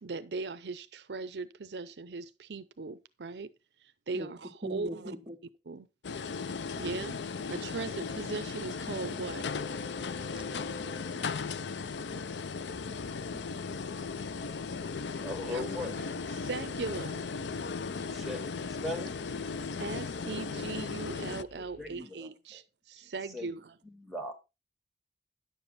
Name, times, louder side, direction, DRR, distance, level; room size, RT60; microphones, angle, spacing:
voice 1, 0.0-3.5 3.8-5.1 5.7-5.9 6.8-7.2 7.5-9.4 15.4-17.2 19.8-23.8, right 4 dB, 75° right, 0.6 m, -39 dB
voice 2, 4.6-5.4, equal, 25° right, 1.4 m, -41 dB
sound 1, 6.0-21.4, left 5 dB, 90° left, 0.5 m, -37 dB
sound 2, 8.9-22.0, equal, 40° left, 4.5 m, -54 dB
voice 3, 15.2-15.9 18.1-19.2 21.8-22.3 23.3-23.5 23.9-24.4, left 1 dB, ahead, 2.0 m, -39 dB
10.5 x 7.2 x 4.1 m
head